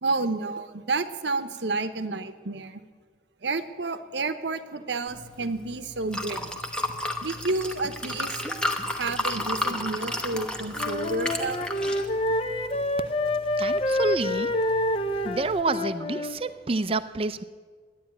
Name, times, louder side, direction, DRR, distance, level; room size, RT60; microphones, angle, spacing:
voice 1, 0.0-2.8 3.4-6.5 7.2-8.4 8.9-11.7, right 3 dB, 70° right, 11 dB, 0.9 m, -30 dB
Liquid, 5.1-15.6, left 1 dB, 5° left, 0.9 m, -34 dB
Wind instrument woodwind instrument, 10.7-16.4, left 1 dB, 30° left, 0.7 m, -27 dB
voice 2, 13.6-14.5 15.2-17.4, right 3 dB, 30° right, 13 dB, 0.5 m, -28 dB
12.0 x 10.0 x 8.9 m, 1.5 s
head